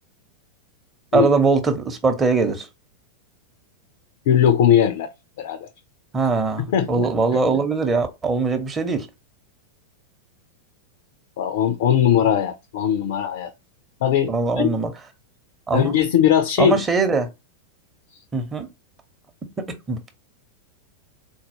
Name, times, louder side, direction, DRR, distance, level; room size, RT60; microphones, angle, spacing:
voice 1, 1.1-2.7 6.1-9.1 14.3-14.9 15.7-15.9 16.6-17.3 18.3-18.7 19.6-20.0, right 4 dB, 20° right, 0.8 m, -21 dB
voice 2, 4.3-5.1 5.4-5.7 6.7-7.1 11.4-13.5 14.0-14.7 15.7-16.8, left 9 dB, 55° left, 0.4 m, -19 dB
4.0 x 2.3 x 2.7 m
figure-of-eight pair, 90°, 0 cm